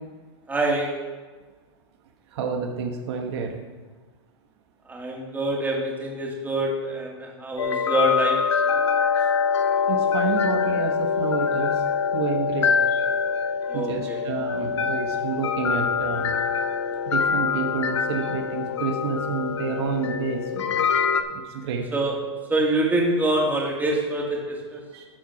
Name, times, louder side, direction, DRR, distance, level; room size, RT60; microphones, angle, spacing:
voice 1, 0.5-0.9 4.9-8.5 13.7-14.2 21.9-22.2 22.5-24.8, right 1 dB, 10° right, -2 dB, 2.5 m, -25 dB
voice 2, 2.3-3.6 9.2-9.3 9.9-11.8 12.1-13.1 13.7-16.3 17.1-20.9 21.3-21.9 24.9-25.0, right 6 dB, 70° right, 3 dB, 1.2 m, -29 dB
sound 1, 7.6-21.2, left 6 dB, 90° left, 0.8 m, -24 dB
13.5 x 4.8 x 5.9 m, 1.3 s
hypercardioid pair, 115°, 15 cm